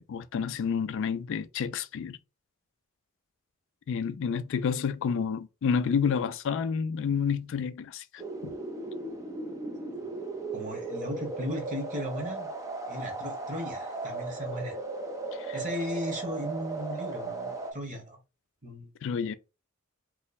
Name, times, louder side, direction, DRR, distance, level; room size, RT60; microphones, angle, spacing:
voice 1, 0.0-2.2 3.9-8.5 15.3-15.6 19.0-19.4, left 6 dB, 65° left, 0.3 m, -30 dB
sound 1, 8.2-17.7, right 3 dB, 15° right, 0.6 m, -36 dB
voice 2, 10.5-12.5 12.9-14.8 15.5-18.2 18.6-18.9, equal, 40° right, 1.2 m, -36 dB
3.1 x 2.1 x 4.1 m
head